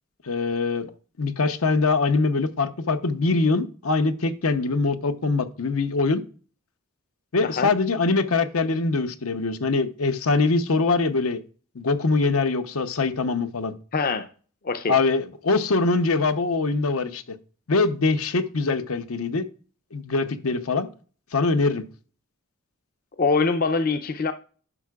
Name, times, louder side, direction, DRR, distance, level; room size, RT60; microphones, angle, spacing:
voice 1, 0.2-0.9 1.2-6.2 7.3-11.4 11.7-13.7 14.9-17.4 17.7-19.4 19.9-20.9 21.3-21.8, left 3 dB, 80° left, 0.8 m, -23 dB
voice 2, 13.9-14.3 14.6-14.9 23.2-24.3, left 4 dB, 40° left, 0.5 m, -23 dB
11.0 x 6.7 x 2.4 m
head